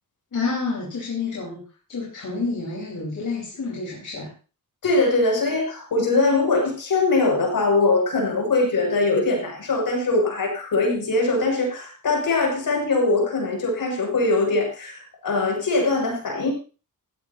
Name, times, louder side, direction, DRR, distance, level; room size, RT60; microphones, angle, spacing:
voice 1, 0.3-1.6 1.9-4.3, left 4 dB, 60° left, -5 dB, 5.0 m, -29 dB
voice 2, 4.8-16.5, left 3 dB, 75° left, 1 dB, 7.3 m, -22 dB
17.5 x 15.5 x 3.0 m, 0.36 s
wide cardioid pair, 170°, 35 cm